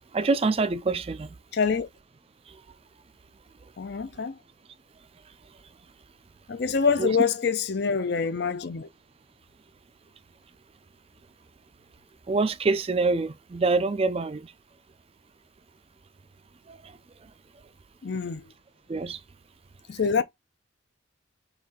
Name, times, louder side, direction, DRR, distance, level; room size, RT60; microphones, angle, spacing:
voice 1, 0.1-1.3 7.0-7.1 12.3-14.5 16.7-16.9 18.9-19.2, right 3 dB, 30° right, 0.3 m, -25 dB
voice 2, 1.5-1.9 3.8-4.4 6.5-8.9 18.0-18.5 19.9-20.2, left 5 dB, 55° left, 0.5 m, -25 dB
4.1 x 3.1 x 3.7 m
head